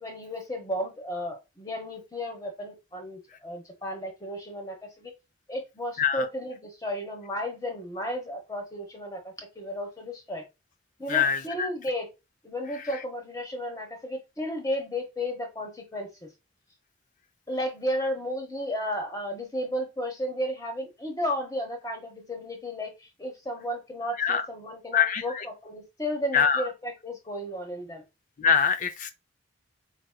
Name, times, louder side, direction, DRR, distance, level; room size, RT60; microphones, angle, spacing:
voice 1, 0.0-5.1 5.5-10.4 11.0-12.1 12.4-16.3 17.5-28.0, equal, 15° left, 1.0 m, -33 dB
voice 2, 11.1-11.7 24.2-24.5 24.9-25.4 26.3-26.7 28.4-29.1, left 7 dB, 40° left, 0.4 m, -24 dB
4.7 x 2.9 x 2.2 m
head